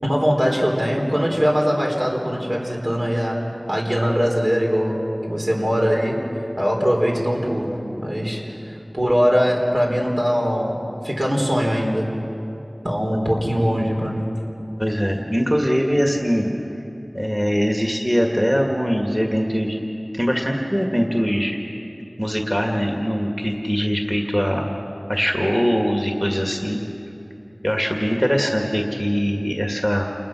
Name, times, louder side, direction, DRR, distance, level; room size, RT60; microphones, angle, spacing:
voice 1, 0.0-6.2 6.6-12.1 12.8-14.3, equal, 60° right, -2 dB, 4.1 m, -21 dB
voice 2, 14.8-16.5 17.1-19.8 20.1-21.6 22.2-24.7 25.1-26.8 27.6-30.1, equal, 5° right, 1 dB, 1.9 m, -22 dB
28.5 x 20.5 x 6.1 m, 2.9 s
wide cardioid pair, 45°, 0 cm